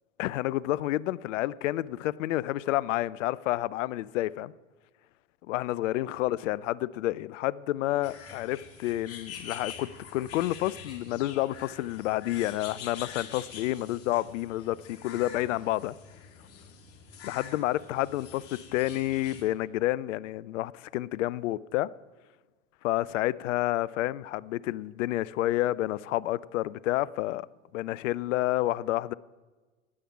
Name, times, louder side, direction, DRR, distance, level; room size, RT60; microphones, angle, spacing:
voice 1, 0.2-4.5 5.5-15.9 17.2-21.9 22.8-27.5 27.7-29.1, left 15 dB, 65° left, 0.5 m, -29 dB
sound 1, 8.0-19.4, left 7 dB, 35° left, 2.1 m, -46 dB
10.0 x 8.6 x 6.9 m
hypercardioid pair, 90°, 41 cm